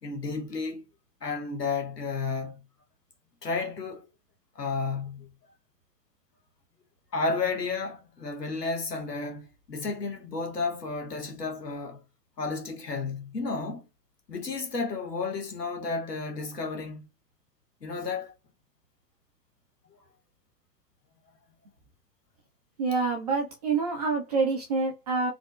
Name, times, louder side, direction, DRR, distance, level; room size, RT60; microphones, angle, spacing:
voice 1, 0.0-0.8 1.2-2.6 3.4-4.1 4.5-5.3 7.1-12.0 12.4-13.9 14.3-17.1 17.8-18.3, left 4 dB, 80° left, 1.2 m, -32 dB
voice 2, 22.8-25.3, right 4 dB, 25° right, 0.5 m, -27 dB
3.8 x 2.0 x 2.3 m
figure-of-eight pair, 110°, 48 cm